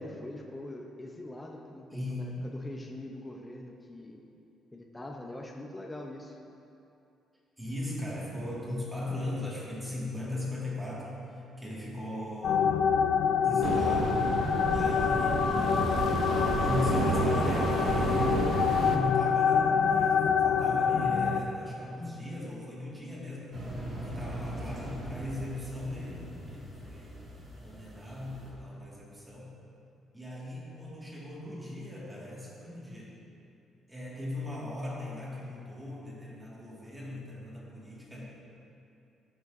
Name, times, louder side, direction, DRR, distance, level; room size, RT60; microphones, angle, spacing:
voice 1, 0.0-4.2 4.7-6.4, left 1 dB, 10° left, 0 dB, 0.6 m, -43 dB
voice 2, 1.9-2.4 7.6-12.7 13.4-14.2 14.7-15.5 16.6-18.4 18.8-23.6 24.0-27.2 27.6-29.5 30.1-33.2 33.9-38.2, left 1 dB, 10° right, -6 dB, 1.9 m, -38 dB
sound 1, 12.4-21.4, left 7 dB, 70° left, 0.4 m, -26 dB
sound 2, 13.6-19.0, right 4 dB, 55° right, 0.6 m, -31 dB
sound 3, 23.5-28.5, right 1 dB, 35° right, 1.9 m, -41 dB
15.0 x 6.2 x 2.6 m, 2.7 s
cardioid pair, 135°, 0 cm